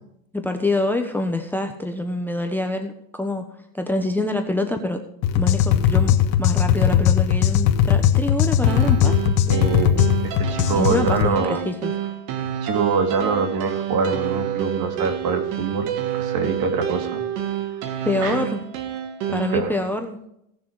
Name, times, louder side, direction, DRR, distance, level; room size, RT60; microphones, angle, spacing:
voice 1, 0.3-3.4 3.7-5.0 5.4-9.4 10.7-11.9 18.0-18.6 19.3-20.3, left 2 dB, 5° left, 6 dB, 1.1 m, -26 dB
sound 1, 5.2-11.3, left 9 dB, 60° left, 1.7 m, -19 dB
sound 2, 8.6-19.6, right 9 dB, 65° right, 2.1 m, -28 dB
voice 2, 9.5-11.6 12.6-15.9 16.1-17.2 18.2-18.4 19.3-19.7, right 5 dB, 45° right, 6 dB, 2.7 m, -24 dB
18.0 x 7.0 x 4.9 m, 0.76 s
supercardioid pair, 115°, 49 cm